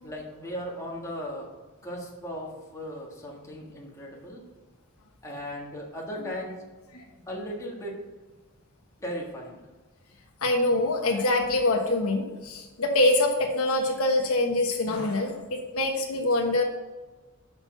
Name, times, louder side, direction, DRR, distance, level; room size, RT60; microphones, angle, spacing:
voice 1, 0.0-1.5 1.8-4.4 5.2-6.6 7.3-8.0 9.0-9.6 16.2-16.3, equal, 15° left, -3 dB, 1.7 m, -37 dB
voice 2, 10.4-16.6, left 2 dB, 80° left, 2 dB, 1.2 m, -25 dB
6.7 x 5.6 x 5.7 m, 1.2 s
head